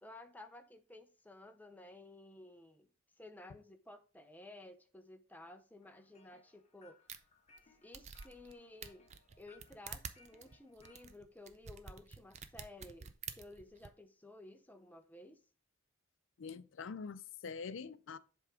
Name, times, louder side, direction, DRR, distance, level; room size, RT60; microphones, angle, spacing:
voice 1, 0.0-2.9 3.2-7.0 7.8-9.1 9.4-15.4, left 2 dB, 10° left, 0.6 m, -55 dB
sound 1, 5.8-11.1, left 3 dB, 30° left, 0.9 m, -67 dB
sound 2, 7.1-7.2 7.6-7.7 7.9-8.5 8.8-13.9, right 7 dB, 30° right, 0.5 m, -49 dB
voice 2, 16.4-18.2, left 5 dB, 60° left, 0.4 m, -45 dB
7.6 x 3.5 x 4.9 m
head